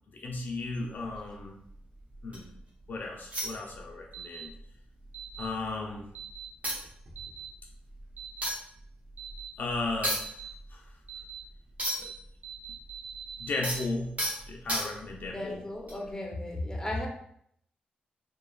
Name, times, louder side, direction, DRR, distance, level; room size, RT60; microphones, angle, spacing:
voice 1, 0.1-1.6 2.2-2.5 2.9-4.5 5.4-6.1 9.6-10.3 10.7-10.9 12.0-12.1 13.4-14.2 14.5-15.6, left 3 dB, 60° left, 0 dB, 0.4 m, -35 dB
sound 1, 0.7-2.6 3.3-4.2 4.5-4.7 5.0-5.9 6.3-6.4 6.6-12.3 12.5-15.3 15.8-16.1, equal, 40° right, 0.9 m, -36 dB
sound 2, 4.1-4.4 5.1-5.5 6.1-6.5 7.2-7.5 8.2-8.5 9.2-9.5 10.2-10.5 11.1-11.4 11.8-12.1 12.4-13.8, right 8 dB, 60° right, 0.4 m, -42 dB
voice 2, 15.3-17.1, left 1 dB, 15° left, 0 dB, 0.6 m, -35 dB
3.0 x 2.2 x 2.3 m, 0.69 s
cardioid pair, 65°, 3 cm